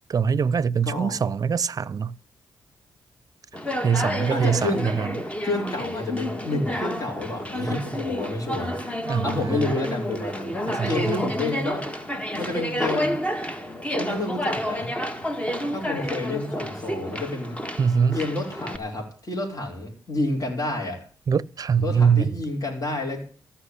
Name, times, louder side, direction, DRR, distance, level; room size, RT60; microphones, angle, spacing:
voice 1, 0.1-2.1 3.8-4.7 5.0-5.1 9.1-9.7 10.7-11.2 17.8-18.2 21.3-22.2, right 6 dB, 45° right, 0.6 m, -23 dB
voice 2, 0.8-1.1 4.3-4.9 5.4-8.7 9.2-10.5 10.8-11.9 12.4-13.2 14.0-14.9 15.7-17.6 18.1-21.0 21.8-23.2, left 2 dB, 45° left, 5.1 m, -29 dB
Conversation, 3.5-18.8, equal, 15° left, 1.7 m, -30 dB
15.0 x 5.8 x 9.9 m
cardioid pair, 75°, 8 cm